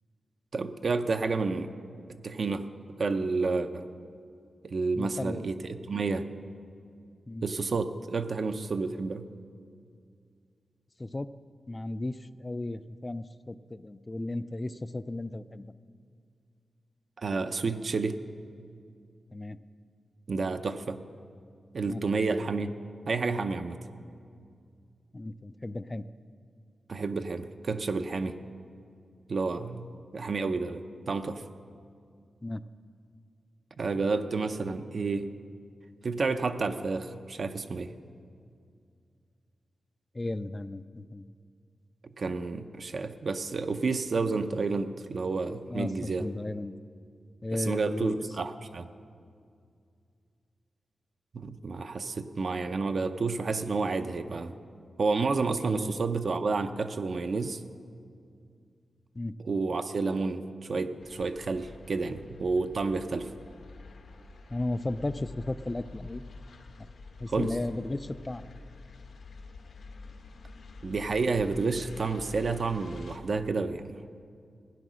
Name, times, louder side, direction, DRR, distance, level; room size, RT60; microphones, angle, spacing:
voice 1, 0.5-1.7 2.2-2.7 3.0-3.9 4.6-6.2 7.4-9.3 17.2-18.2 20.3-21.0 21.7-22.7 23.1-23.8 26.9-28.4 29.3-29.9 30.1-30.8 31.1-31.4 33.8-35.3 36.0-37.9 42.2-46.3 47.5-48.9 51.3-54.5 55.0-57.6 59.4-63.3 67.3-67.5 70.8-73.9, right 4 dB, 50° right, 8 dB, 0.5 m, -30 dB
voice 2, 4.9-5.4 7.3-7.4 11.0-11.3 11.7-15.7 19.3-19.6 21.9-22.0 25.1-26.0 32.4-32.6 40.1-41.2 45.7-46.7 47.4-48.2 55.6-56.0 59.1-59.3 64.5-66.2 66.8-66.9 67.2-68.4, left 2 dB, 20° left, 14 dB, 0.3 m, -35 dB
sound 1, 61.0-73.2, left 3 dB, 80° left, 1.2 m, -47 dB
16.0 x 10.0 x 6.2 m, 2.3 s
wide cardioid pair, 160°, 0 cm